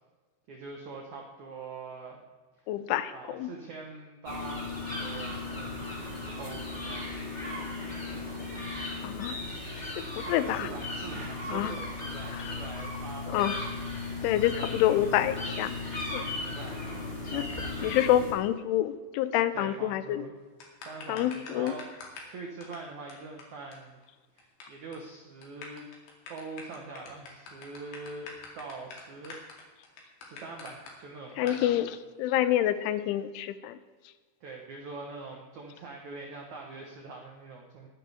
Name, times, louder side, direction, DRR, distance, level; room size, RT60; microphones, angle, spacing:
voice 1, 0.5-2.2 2.6-2.7 3.1-7.3 10.2-13.6 14.5-15.3 16.3-16.9 17.2-17.8 19.5-20.3 20.8-24.0 24.3-25.9 26.3-29.4 30.2-31.8 34.4-37.9, right 3 dB, 85° right, 1 dB, 1.6 m, -44 dB
voice 2, 2.7-3.5 9.0-9.4 10.2-10.7 11.5-11.7 13.3-13.6 14.2-15.8 16.1-16.3 17.3-17.5 17.8-20.2 21.1-21.7 31.4-31.9 32.2-33.8, left 12 dB, 90° left, 12 dB, 3.2 m, -27 dB
sound 1, 4.2-18.3, left 2 dB, 10° left, 2.8 m, -36 dB
sound 2, 20.6-22.3 22.6-22.8 23.1-23.2 23.4-23.5 23.7-23.8 24.0-24.6 24.9-25.1 25.4-30.9 31.5-31.6, left 4 dB, 70° left, 4.5 m, -45 dB
22.0 x 10.5 x 3.5 m, 1.3 s
omnidirectional pair, 5.4 m